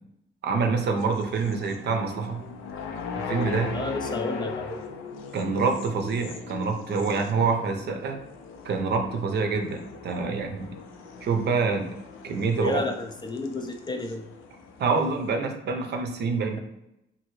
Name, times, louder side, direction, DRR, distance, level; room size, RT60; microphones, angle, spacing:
voice 1, 0.4-2.4 3.2-3.8 5.3-8.2 8.6-10.8 11.2-11.9 12.2-12.8 14.8-16.6, right 4 dB, 55° right, 4 dB, 0.6 m, -26 dB
sound 1, 1.0-15.3, left 5 dB, 85° left, 0.5 m, -39 dB
voice 2, 3.7-4.8 12.6-14.3, left 2 dB, 25° left, 5 dB, 0.3 m, -31 dB
2.8 x 2.5 x 3.0 m, 0.86 s
cardioid pair, 90°, 20 cm